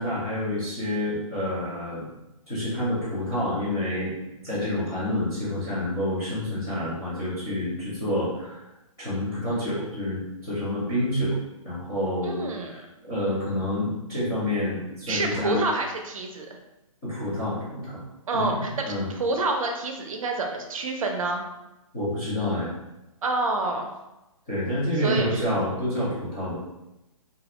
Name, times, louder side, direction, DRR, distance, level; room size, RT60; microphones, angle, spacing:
voice 1, 0.0-2.1 2.5-4.1 4.4-8.6 9.0-11.4 11.6-15.6 17.0-18.0 18.3-19.1 21.9-22.7 24.5-26.6, left 1 dB, 10° left, -16 dB, 0.3 m, -28 dB
voice 2, 12.2-12.8 15.1-16.5 18.3-18.9 19.1-21.4 23.2-23.9 25.0-25.4, right 3 dB, 70° right, 3 dB, 0.5 m, -28 dB
2.4 x 2.0 x 2.8 m, 0.95 s
hypercardioid pair, 170°, 18 cm